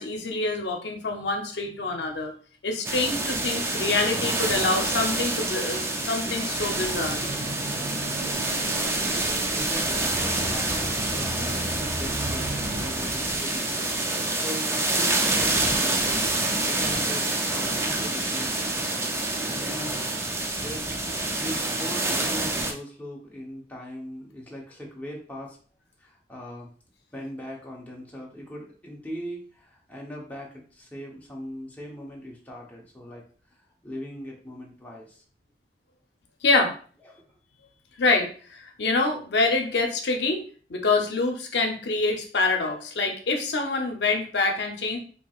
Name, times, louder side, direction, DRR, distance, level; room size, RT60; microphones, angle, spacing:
voice 1, 0.0-2.3 2.6-7.2 36.4-36.7 38.0-40.4 40.7-45.0, left 3 dB, 75° left, 3 dB, 0.7 m, -26 dB
sound 1, 2.8-22.7, right 2 dB, 15° right, 0.4 m, -27 dB
sound 2, 6.2-13.8, right 1 dB, 35° right, 0.7 m, -38 dB
voice 2, 7.6-8.0 9.5-13.8 14.3-16.2 16.6-18.7 19.5-20.0 20.5-25.6 26.0-26.7 27.1-33.2 33.5-35.2 37.0-37.2, equal, 10° left, -3 dB, 0.8 m, -40 dB
4.5 x 2.8 x 2.4 m, 0.42 s
head